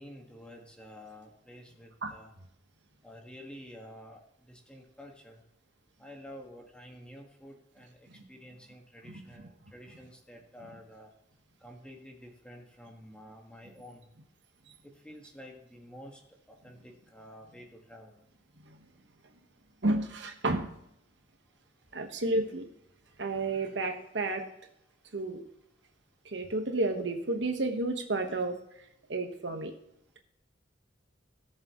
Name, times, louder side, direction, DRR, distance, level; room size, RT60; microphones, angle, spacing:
voice 1, 0.0-2.3 3.0-4.2 4.5-5.4 6.0-11.1 11.6-14.1 15.0-16.2 16.5-18.2, equal, 5° left, 1 dB, 1.7 m, -50 dB
voice 2, 19.8-20.7 21.9-22.7 23.2-24.4 25.1-25.4 26.2-28.6 29.1-29.7, right 2 dB, 75° right, 4 dB, 1.3 m, -31 dB
17.5 x 6.8 x 3.1 m, 0.76 s
head